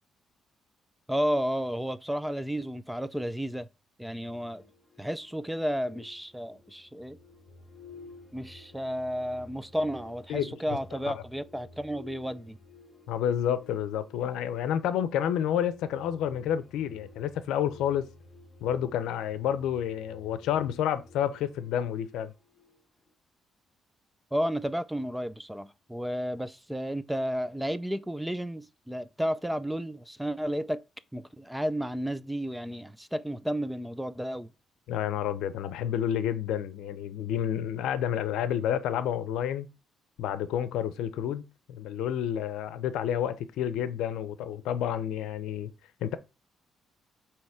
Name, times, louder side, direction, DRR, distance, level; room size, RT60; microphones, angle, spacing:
voice 1, 1.1-3.7 4.0-4.6 5.0-7.2 8.3-12.6 24.3-30.8 31.1-34.5, equal, 5° right, 0.5 m, -32 dB
sound 1, 4.2-23.1, left 3 dB, 40° left, 3.8 m, -54 dB
voice 2, 13.1-18.1 18.6-22.3 34.9-39.7 40.2-45.7 46.0-46.2, left 10 dB, 90° left, 0.6 m, -30 dB
7.8 x 3.1 x 4.8 m
cardioid pair, 90°, 0 cm